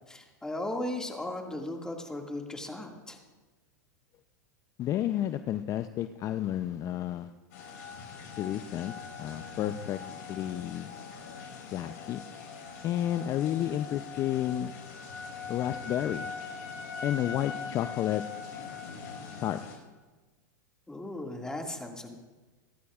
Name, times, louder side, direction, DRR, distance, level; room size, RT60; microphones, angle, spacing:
voice 1, 0.1-3.2 20.9-22.2, left 1 dB, 5° left, 2 dB, 2.0 m, -36 dB
voice 2, 4.8-7.3 8.4-10.0 10.3-10.9 11.7-12.2 12.8-14.7 15.5-16.3 17.0-18.2 19.4-19.6, left 12 dB, 35° left, 11 dB, 0.5 m, -31 dB
sound 1, 7.5-19.7, left 5 dB, 65° left, 5.4 m, -42 dB
25.0 x 12.5 x 2.4 m, 1.3 s
hypercardioid pair, 105°, 10 cm